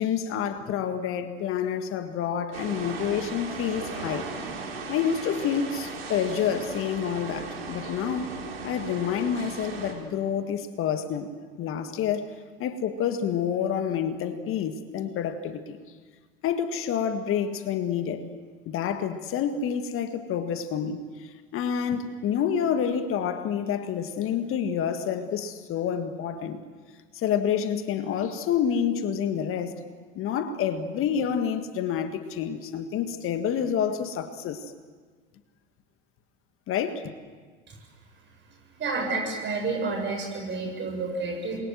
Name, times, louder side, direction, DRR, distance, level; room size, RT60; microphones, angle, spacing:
voice 1, 0.0-4.3 4.9-8.4 8.6-12.3 12.6-15.8 16.4-18.2 18.6-26.6 27.1-29.8 30.1-34.7 36.7-37.1, left 8 dB, 45° left, 8 dB, 1.8 m, -28 dB
sound 1, 2.5-9.9, right 4 dB, 80° right, 4.2 m, -37 dB
voice 2, 38.8-41.6, right 3 dB, 40° right, 1 dB, 7.8 m, -29 dB
28.0 x 22.5 x 7.8 m, 1.5 s
figure-of-eight pair, 70°, 29 cm